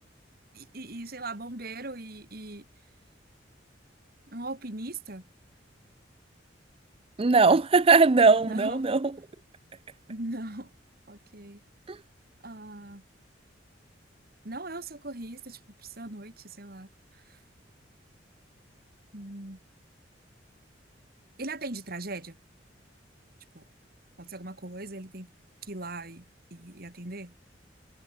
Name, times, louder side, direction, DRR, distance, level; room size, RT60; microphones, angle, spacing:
voice 1, 0.5-2.6 4.3-5.2 8.5-8.9 10.1-10.7 11.1-11.6 12.4-13.0 14.4-16.9 17.3-17.4 19.1-19.6 21.4-22.4 23.5-23.6 24.2-25.3 25.6-26.2 26.5-27.3, right 2 dB, 55° right, 3.4 m, -39 dB
voice 2, 7.2-9.1 11.9-12.0, right 4 dB, 30° right, 0.5 m, -20 dB
head